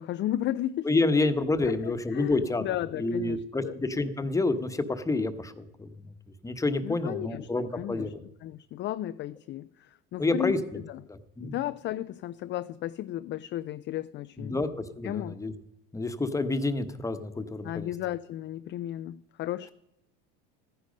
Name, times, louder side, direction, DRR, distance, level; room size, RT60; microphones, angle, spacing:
voice 1, 0.0-0.9 1.6-3.8 6.8-8.1 8.4-11.0 11.4-14.6 15.0-15.4 17.6-19.7, left 13 dB, 40° left, 0.4 m, -34 dB
voice 2, 0.8-2.6 3.0-6.1 6.4-8.2 10.2-10.8 11.4-11.5 14.4-15.5 15.9-17.9, left 2 dB, 10° left, 1.1 m, -28 dB
14.0 x 10.0 x 5.3 m
supercardioid pair, 105°, 31 cm